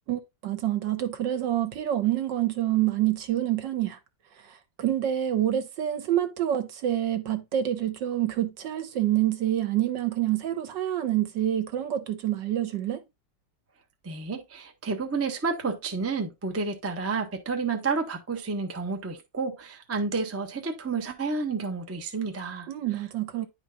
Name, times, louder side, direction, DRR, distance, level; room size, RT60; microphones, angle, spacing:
voice 1, 0.1-4.0 4.5-13.0 22.7-23.5, right 12 dB, 70° right, 1.6 m, -27 dB
voice 2, 14.0-23.0, right 4 dB, 15° right, 0.4 m, -30 dB
10.5 x 4.5 x 2.4 m
omnidirectional pair, 2.0 m